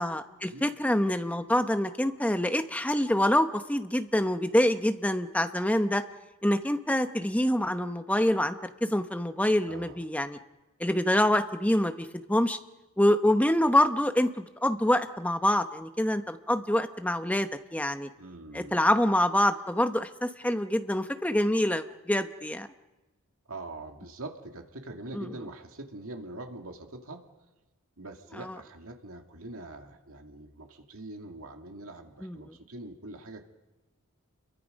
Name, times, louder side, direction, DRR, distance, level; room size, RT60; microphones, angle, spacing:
voice 1, 0.0-6.0 6.4-8.5 8.8-10.4 10.8-12.6 13.0-18.1 18.5-22.7 25.1-25.3 28.4-28.6 32.2-32.5, left 1 dB, 5° left, 8 dB, 0.9 m, -26 dB
voice 2, 9.7-10.0 18.2-18.8 23.5-27.3 28.0-33.5, right 2 dB, 70° right, 3 dB, 2.4 m, -43 dB
29.5 x 23.0 x 5.3 m, 1.1 s
head